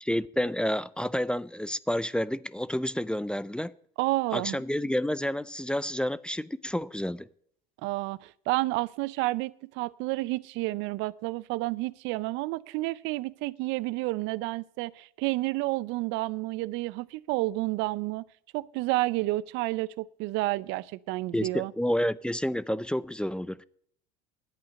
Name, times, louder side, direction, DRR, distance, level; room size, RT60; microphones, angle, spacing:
voice 1, 0.0-3.7 4.3-7.3 21.3-23.6, equal, 5° left, 0.4 m, -29 dB
voice 2, 4.0-4.6 7.8-18.2 18.5-21.7, right 20 dB, 65° right, 0.6 m, -30 dB
11.0 x 8.5 x 6.3 m
supercardioid pair, 90°, 21 cm